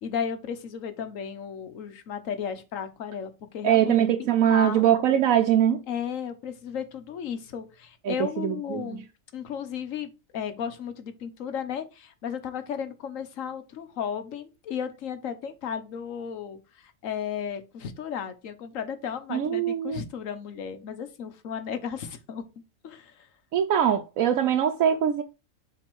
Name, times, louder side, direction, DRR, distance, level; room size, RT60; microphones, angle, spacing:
voice 1, 0.0-3.9 4.2-4.9 5.9-9.1 9.3-22.4 22.8-23.3, left 7 dB, 75° left, 1.3 m, -34 dB
voice 2, 3.6-5.8 8.1-8.9 19.3-20.0 23.5-25.2, right 10 dB, 90° right, 1.1 m, -22 dB
7.4 x 3.5 x 4.6 m
omnidirectional pair, 1.4 m